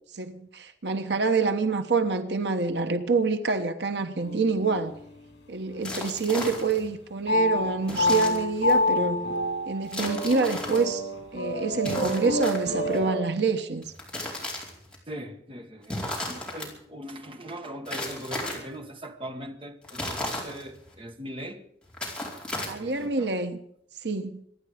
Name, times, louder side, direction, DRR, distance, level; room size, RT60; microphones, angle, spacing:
voice 1, 0.1-4.9 5.5-9.2 9.7-13.9 22.7-23.6 24.0-24.4, right 4 dB, 70° right, 1.2 m, -27 dB
sound 1, 4.2-5.0 5.7-6.3 7.3-13.2, left 1 dB, 70° left, 6.7 m, -28 dB
sound 2, 5.8-6.9 7.8-8.8 9.9-10.8 11.8-13.0 13.8-15.0 15.8-16.7 17.9-18.8 19.8-20.9 21.8-23.1, left 1 dB, 5° left, 4.7 m, -35 dB
voice 2, 15.1-21.6 22.5-23.4, equal, 30° right, 1.7 m, -40 dB
25.5 x 11.0 x 5.1 m
head